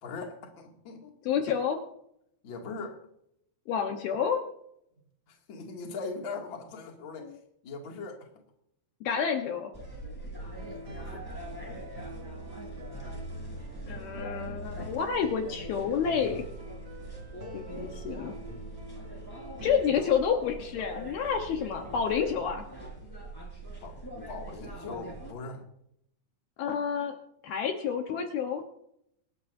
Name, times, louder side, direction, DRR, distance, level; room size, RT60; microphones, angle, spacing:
voice 1, 0.0-1.2 2.4-3.0 5.3-7.3 7.6-8.3 10.6-11.3 23.8-24.0 24.3-25.6, left 4 dB, 35° left, 1 dB, 2.5 m, -40 dB
voice 2, 1.3-1.8 3.7-4.4 7.2-7.3 9.0-9.7 13.9-16.4 17.5-18.4 19.6-22.7 26.6-27.1 27.4-28.6, left 7 dB, 70° left, 3 dB, 2.8 m, -29 dB
sound 1, 9.7-25.3, right 1 dB, 5° left, 4.1 m, -43 dB
sound 2, 10.4-19.8, right 1 dB, 35° right, 3.2 m, -44 dB
25.0 x 12.5 x 2.7 m, 0.74 s
omnidirectional pair, 5.0 m